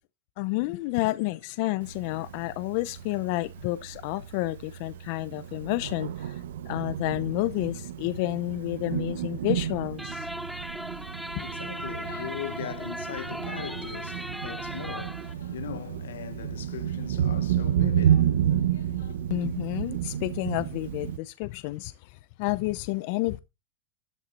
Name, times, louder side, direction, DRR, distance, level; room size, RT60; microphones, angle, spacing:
voice 1, 0.4-6.4 6.7-10.3 11.3-11.4 19.3-23.4, left 19 dB, 60° left, 0.6 m, -30 dB
Thunder, 1.8-21.2, right 10 dB, 80° right, 1.1 m, -31 dB
sound 1, 10.0-15.3, equal, ahead, 0.5 m, -37 dB
voice 2, 10.9-19.2, left 10 dB, 85° left, 1.3 m, -40 dB
13.0 x 8.1 x 4.1 m
hypercardioid pair, 115°, 0 cm